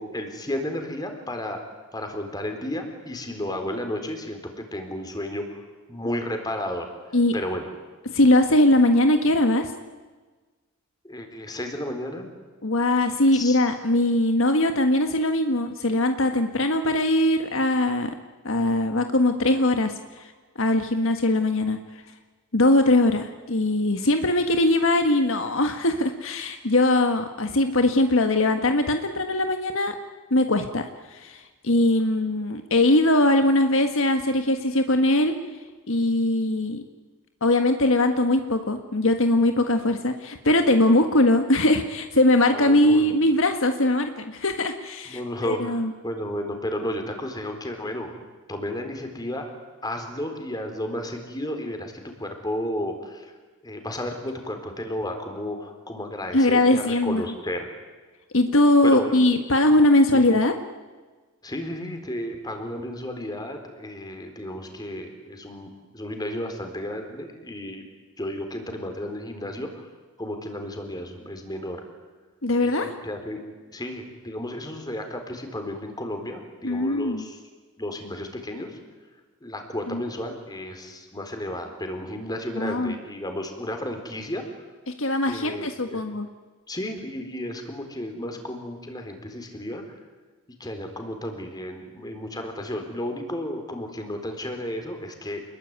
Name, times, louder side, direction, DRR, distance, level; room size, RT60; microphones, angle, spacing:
voice 1, 0.0-1.6 1.9-4.4 4.7-5.6 5.9-6.9 7.3-7.7 11.0-12.3 13.3-13.6 42.5-43.1 45.1-48.2 48.5-49.5 49.8-51.9 52.2-53.3 53.6-57.7 58.8-59.1 60.1-60.3 61.4-67.8 68.2-69.8 70.2-71.8 72.6-73.4 73.7-77.4 77.8-78.8 79.4-84.4 85.3-86.0 86.7-89.8 90.6-95.4, left 1 dB, 20° left, 5 dB, 4.2 m, -33 dB
voice 2, 8.1-9.7 12.6-18.1 18.4-19.9 20.2-20.3 20.6-21.8 22.5-29.9 30.3-35.3 35.9-36.8 37.4-45.9 56.3-57.2 58.3-60.5 72.4-72.9 76.6-77.2 79.9-80.0 82.5-83.0 85.0-86.3, left 1 dB, 60° left, 6 dB, 1.6 m, -21 dB
28.5 x 21.5 x 9.6 m, 1.4 s
head